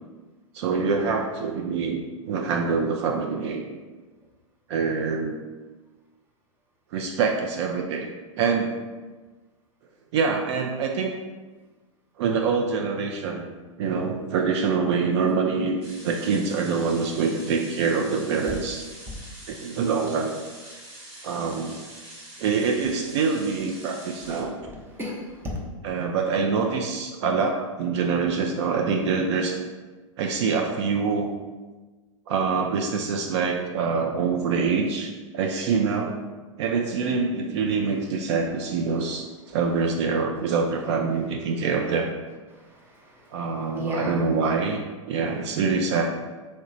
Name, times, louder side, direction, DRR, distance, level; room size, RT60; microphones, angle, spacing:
voice 1, 0.5-2.0 2.3-3.6 4.7-5.4 6.9-8.1 8.4-8.7 10.1-11.1 12.2-13.5 13.8-15.8 16.0-18.9 19.5-20.3 21.2-21.8 22.4-24.6 25.8-29.6 30.2-31.3 32.3-36.1 36.6-42.1 43.3-46.0, right 5 dB, 55° right, 2 dB, 0.4 m, -25 dB
sound 1, 15.8-24.4, right 1 dB, 35° right, 1.2 m, -44 dB
voice 2, 25.0-25.6 42.7-43.2 43.7-44.3, left 1 dB, 15° right, -3 dB, 0.6 m, -33 dB
3.0 x 2.1 x 3.8 m, 1.3 s
hypercardioid pair, 120°, 17 cm